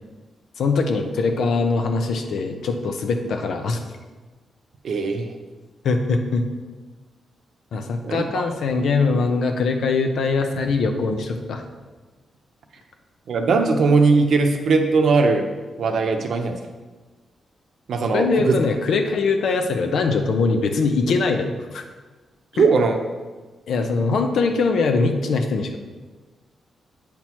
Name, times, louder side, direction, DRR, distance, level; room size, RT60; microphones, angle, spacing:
voice 1, 0.6-3.8 5.8-6.5 7.7-11.6 18.1-21.8 22.6-22.7 23.7-25.8, left 4 dB, 75° left, 5 dB, 0.8 m, -22 dB
voice 2, 4.8-5.3 8.0-8.2 13.3-15.4 15.8-16.6 17.9-18.6 22.5-23.0, right 4 dB, 65° right, 4 dB, 0.8 m, -19 dB
8.6 x 6.0 x 3.0 m, 1.3 s
wide cardioid pair, 130°, 0 cm